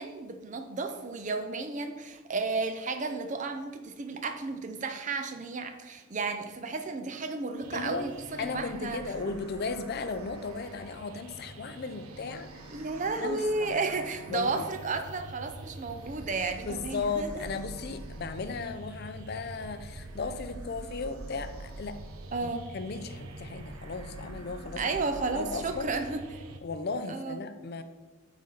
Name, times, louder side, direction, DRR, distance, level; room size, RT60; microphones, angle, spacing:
voice 1, 0.0-9.0 12.7-17.5 22.3-22.7 24.8-26.4 27.1-27.4, right 3 dB, 35° right, 7 dB, 0.5 m, -33 dB
sound 1, 7.6-26.6, right 2 dB, 85° right, 0.6 m, -45 dB
voice 2, 7.7-8.1 8.4-12.8 13.2-13.7 14.3-14.6 16.7-22.0 22.4-24.8 25.3-25.9 26.6-27.8, left 4 dB, 45° left, 9 dB, 0.4 m, -36 dB
8.3 x 4.1 x 3.9 m, 1.2 s
head